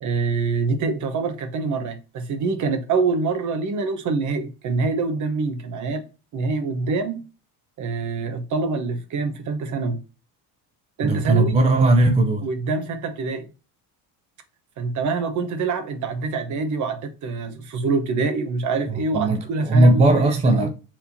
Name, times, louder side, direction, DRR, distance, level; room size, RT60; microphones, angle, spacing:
voice 1, 0.0-6.0 6.3-7.2 7.8-10.0 11.0-11.6 12.4-13.4 14.8-20.7, right 4 dB, 45° right, 1.0 m, -25 dB
voice 2, 11.0-12.4 19.1-20.7, right 2 dB, 15° right, 0.4 m, -17 dB
4.8 x 3.6 x 2.6 m
cardioid pair, 145°, 41 cm